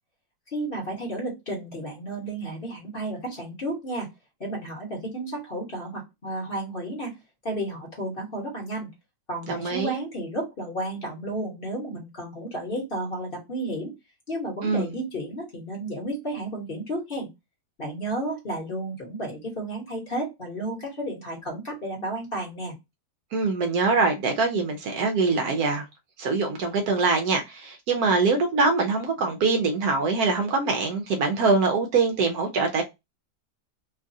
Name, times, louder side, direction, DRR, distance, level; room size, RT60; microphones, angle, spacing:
voice 1, 0.5-4.1 4.4-7.1 7.4-8.9 9.3-13.9 14.3-17.3 17.8-22.8, right 1 dB, 35° left, 1.1 m, -32 dB
voice 2, 9.5-10.0 14.6-14.9 23.3-25.8 26.2-32.8, right 4 dB, 70° right, 1.0 m, -23 dB
3.1 x 2.4 x 2.6 m
omnidirectional pair, 1.8 m